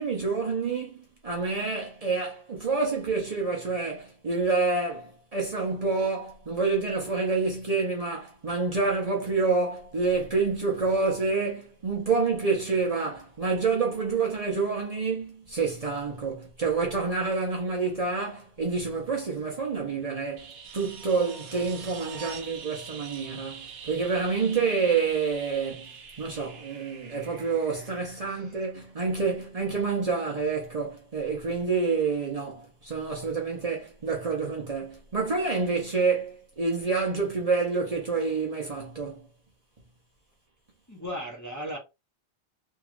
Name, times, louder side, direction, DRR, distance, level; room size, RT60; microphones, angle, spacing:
voice 1, 0.0-25.9 26.2-39.3, right 4 dB, 40° right, 0.8 m, -28 dB
sound 1, 20.4-29.0 31.4-31.5, right 6 dB, 80° right, 1.0 m, -44 dB
voice 2, 28.2-28.6 40.9-41.8, equal, 20° left, 0.8 m, -37 dB
3.0 x 2.8 x 2.4 m
omnidirectional pair, 1.0 m